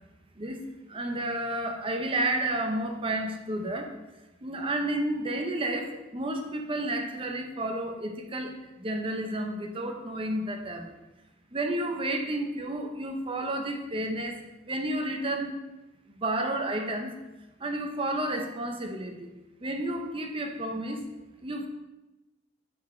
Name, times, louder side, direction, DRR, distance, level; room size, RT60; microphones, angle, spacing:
voice 1, 0.9-3.9 4.4-10.9 11.5-14.4 14.7-15.6 16.2-17.2 17.6-19.3 19.6-21.1 21.4-21.7, right 1 dB, 30° right, 4 dB, 0.7 m, -31 dB
9.4 x 4.3 x 3.2 m, 1.0 s
head